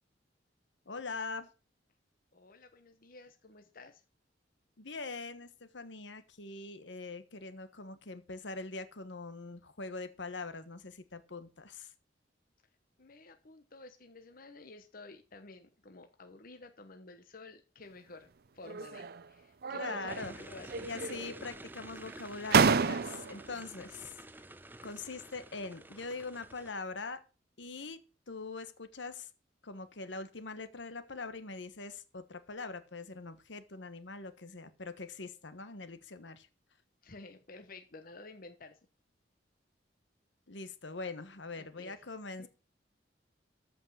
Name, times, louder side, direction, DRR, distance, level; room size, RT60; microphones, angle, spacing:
voice 1, 0.9-1.5 4.8-11.9 19.7-20.4 20.8-24.1 24.8-27.2 27.6-28.0 28.3-29.3 29.6-36.5 40.5-42.5, left 3 dB, 70° left, 1.2 m, -42 dB
voice 2, 2.3-4.0 13.0-18.3 18.5-20.9 23.5-23.9 37.0-38.8 41.6-42.0 42.4-42.5, left 3 dB, 50° left, 1.1 m, -52 dB
sound 1, 18.6-19.2 19.6-20.4 20.7-21.4 22.1-22.2 22.5-23.5, right 5 dB, 55° right, 0.6 m, -30 dB
sound 2, 20.1-26.7, right 1 dB, 10° right, 0.7 m, -50 dB
14.0 x 5.5 x 6.3 m
head